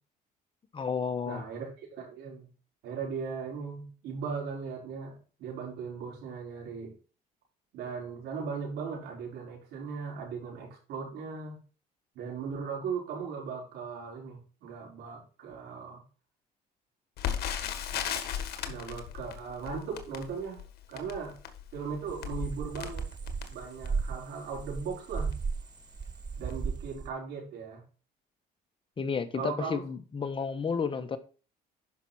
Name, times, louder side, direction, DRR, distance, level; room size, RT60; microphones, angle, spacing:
voice 1, 0.7-1.5 29.0-31.2, left 5 dB, 30° left, 1.3 m, -32 dB
voice 2, 1.3-2.5 2.8-6.9 7.7-11.6 12.1-16.0 18.7-20.6 20.9-21.4 21.7-23.1 23.5-25.3 26.4-27.8 29.3-29.8, right 5 dB, 80° right, 5.4 m, -38 dB
Crackle, 17.2-24.1 24.7-24.8 25.2-25.4 26.0-26.2 26.5-26.6, left 9 dB, 70° left, 1.6 m, -37 dB
sound 1, 22.1-25.7 25.9-27.1, right 5 dB, 25° right, 0.5 m, -35 dB
10.5 x 6.0 x 4.4 m
cardioid pair, 110°, 17 cm